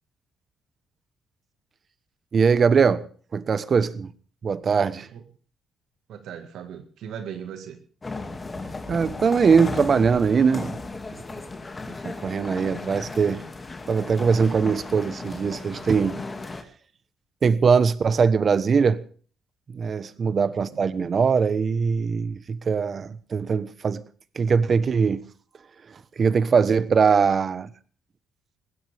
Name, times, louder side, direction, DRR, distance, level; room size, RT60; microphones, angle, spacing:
voice 1, 2.3-3.0 3.3-4.1 4.4-5.1 8.9-10.8 12.0-13.4 13.9-16.2 17.4-19.0 19.7-24.0 24.3-25.2 26.2-27.7, right 5 dB, 45° right, 1.2 m, -21 dB
voice 2, 6.1-7.8 20.1-20.6, right 8 dB, 80° right, 1.9 m, -38 dB
sound 1, 8.0-16.6, left 3 dB, 25° left, 2.5 m, -35 dB
20.5 x 16.5 x 3.6 m
cardioid pair, 90°, 0 cm